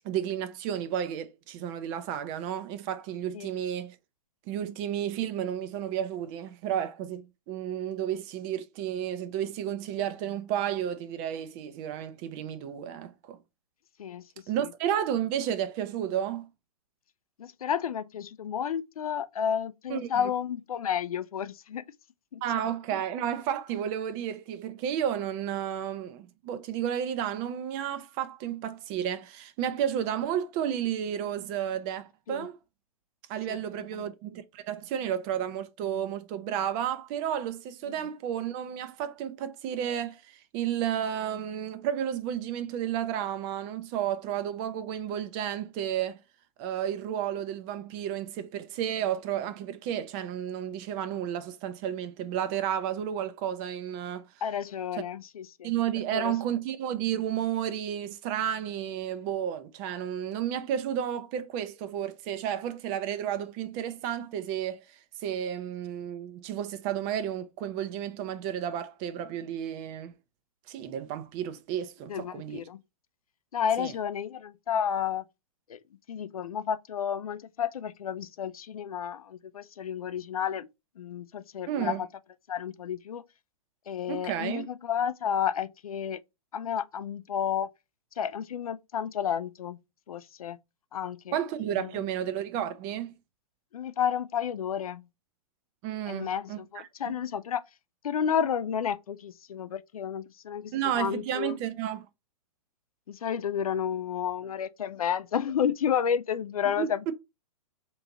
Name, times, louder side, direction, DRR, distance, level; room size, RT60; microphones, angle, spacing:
voice 1, 0.0-4.0 4.5-13.4 14.5-16.5 19.9-20.1 22.4-32.6 33.3-46.2 46.6-54.3 55.6-64.8 65.2-70.1 70.7-72.6 73.8-73.9 81.7-82.0 84.1-84.6 91.3-93.1 95.8-97.1 100.7-102.1 106.8-107.1, right 10 dB, 25° right, 0.4 m, -32 dB
voice 2, 17.4-21.8 22.3-22.4 32.3-32.5 33.5-33.6 34.0-34.1 54.4-55.7 56.1-56.3 72.1-72.8 73.5-75.2 75.7-75.8 76.1-80.7 81.0-82.1 82.5-83.2 83.9-86.2 86.5-87.7 88.2-89.8 90.1-90.6 90.9-91.4 91.8-91.9 93.7-95.1 96.1-97.6 98.0-101.6 103.1-107.1, left 8 dB, 70° left, 0.4 m, -31 dB
3.0 x 2.4 x 3.8 m
figure-of-eight pair, 115°, 19 cm